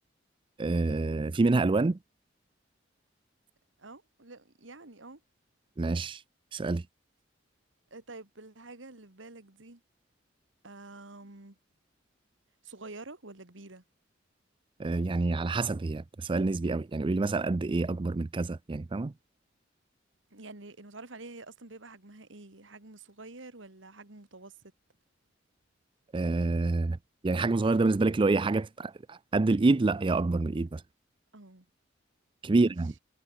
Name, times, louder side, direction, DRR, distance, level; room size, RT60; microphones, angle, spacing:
voice 1, 0.6-2.0 5.8-6.2 6.5-6.8 14.8-19.1 26.1-27.0 27.2-30.8 32.4-32.9, right 3 dB, 25° right, 0.4 m, -27 dB
voice 2, 3.8-5.2 7.9-9.8 10.6-11.6 12.6-13.8 20.3-24.6 31.3-31.7 32.5-32.7, right 2 dB, 70° right, 2.2 m, -48 dB
head